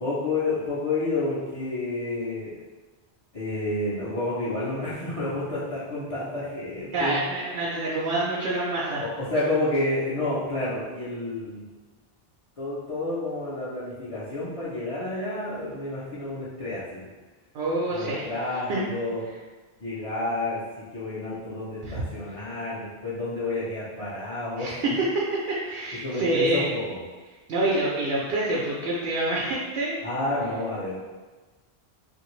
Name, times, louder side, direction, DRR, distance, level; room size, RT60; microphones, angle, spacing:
voice 1, 0.0-2.6 3.3-7.2 9.0-11.7 12.6-17.1 17.9-19.3 19.8-20.7 20.9-24.7 26.0-27.0 30.0-31.0, left 2 dB, 40° left, -9 dB, 0.6 m, -30 dB
voice 2, 6.9-9.0 17.5-18.3 18.7-18.8 21.8-22.0 24.6-26.7 27.5-29.9, right 2 dB, 90° right, -5 dB, 0.9 m, -26 dB
2.8 x 2.5 x 3.0 m, 1.3 s
omnidirectional pair, 1.1 m